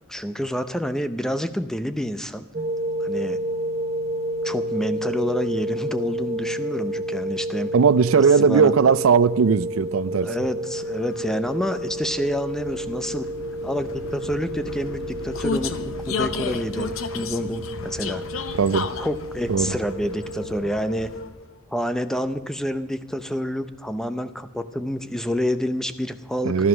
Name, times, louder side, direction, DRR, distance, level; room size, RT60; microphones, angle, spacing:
voice 1, 0.1-2.5 3.0-3.4 4.4-7.7 8.4-8.7 10.2-13.3 13.6-18.2 19.0-21.1 21.7-26.5, equal, 5° left, 0.6 m, -28 dB
sound 1, 2.5-20.6, right 1 dB, 30° right, 0.7 m, -31 dB
voice 2, 7.7-10.3 18.6-18.9 19.5-19.7 26.4-26.7, right 5 dB, 85° right, 0.4 m, -18 dB
Vehicle, 9.7-21.6, left 4 dB, 80° left, 0.8 m, -34 dB
14.0 x 12.5 x 6.1 m
head